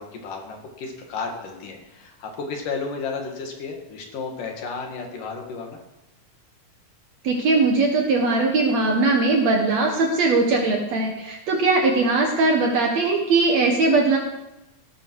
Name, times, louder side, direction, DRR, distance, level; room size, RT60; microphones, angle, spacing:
voice 1, 0.0-5.8, left 4 dB, 85° left, 2 dB, 3.9 m, -33 dB
voice 2, 7.2-14.2, right 3 dB, 60° right, 1 dB, 2.5 m, -20 dB
16.5 x 13.5 x 4.8 m, 0.96 s
omnidirectional pair, 3.7 m